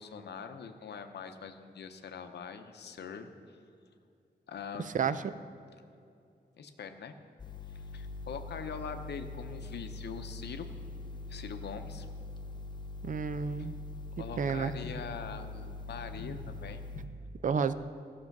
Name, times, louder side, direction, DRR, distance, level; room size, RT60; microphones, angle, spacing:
voice 1, 0.0-3.3 4.5-5.1 6.6-7.1 7.7-10.7 11.3-12.1 13.6-13.7 14.2-17.1, left 6 dB, 80° left, 7 dB, 0.7 m, -43 dB
voice 2, 4.9-5.3 13.0-13.7 14.4-14.7 17.4-17.7, right 6 dB, 50° right, 14 dB, 0.4 m, -30 dB
sound 1, 7.4-17.1, left 3 dB, 25° left, 0.5 m, -43 dB
14.5 x 6.1 x 5.9 m, 2.5 s
wide cardioid pair, 150°, 17 cm